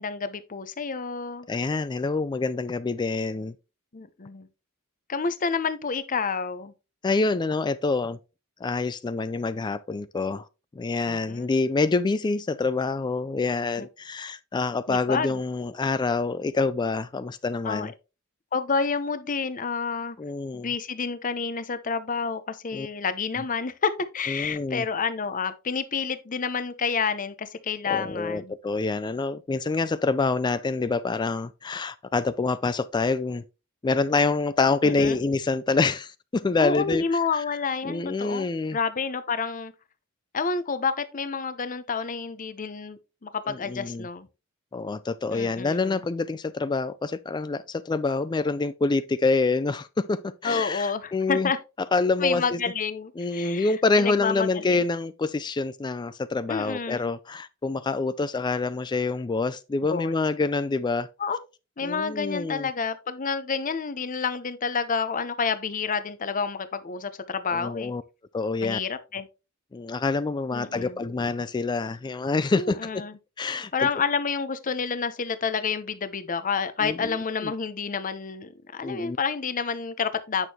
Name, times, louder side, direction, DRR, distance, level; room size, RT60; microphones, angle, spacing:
voice 1, 0.0-1.5 3.9-4.5 5.1-6.7 11.1-11.5 13.8-13.9 14.9-15.4 17.6-17.9 18.5-20.2 20.5-28.5 34.8-35.2 36.6-38.5 38.7-39.7 40.3-44.3 45.3-46.0 50.4-51.6 52.2-54.8 56.5-57.1 59.8-60.1 61.2-61.4 61.8-67.9 68.6-69.3 70.5-71.0 72.5-73.2 73.7-80.5, left 5 dB, 40° left, 0.7 m, -29 dB
voice 2, 1.5-3.5 7.0-8.2 8.6-10.4 10.8-17.9 20.2-20.7 22.7-22.9 24.3-24.9 27.9-33.4 33.8-37.4 37.8-38.8 43.5-44.1 44.7-51.5 51.9-52.6 53.2-61.1 61.8-62.7 67.5-68.0 68.3-68.8 69.7-73.0 73.4-73.9 76.8-77.5 78.8-79.2, left 3 dB, 20° left, 0.3 m, -26 dB
8.9 x 6.3 x 2.8 m
head